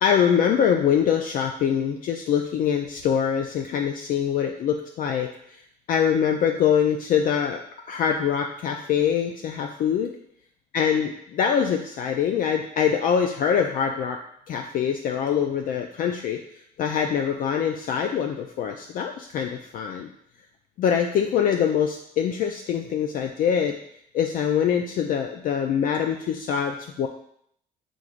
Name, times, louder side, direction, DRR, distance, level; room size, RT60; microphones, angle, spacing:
voice 1, 0.0-5.3 5.9-7.6 7.9-10.1 10.7-14.2 14.5-16.4 16.8-20.1 20.8-23.8 24.1-27.1, left 8 dB, 55° left, 3 dB, 0.4 m, -24 dB
4.6 x 3.8 x 2.4 m, 0.69 s
cardioid pair, 110°, 17 cm